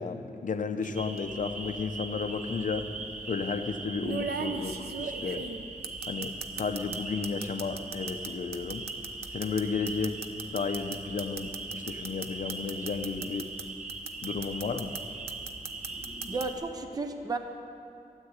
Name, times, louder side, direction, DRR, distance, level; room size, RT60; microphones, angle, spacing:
voice 1, 0.0-2.8 3.3-5.4 6.1-8.9 9.3-10.2 10.5-13.5 14.2-14.9, left 5 dB, 55° left, 7 dB, 0.6 m, -33 dB
sound 1, 0.8-1.2 2.4-2.5 4.0-7.0 7.2-13.6 13.9-15.0 15.3-16.5, right 5 dB, 90° right, 0.8 m, -37 dB
sound 2, 0.9-16.5, right 3 dB, 50° right, 1.1 m, -40 dB
voice 2, 16.3-17.4, right 3 dB, 25° right, 6 dB, 0.7 m, -33 dB
13.5 x 8.1 x 9.7 m, 2.6 s
wide cardioid pair, 165°, 16 cm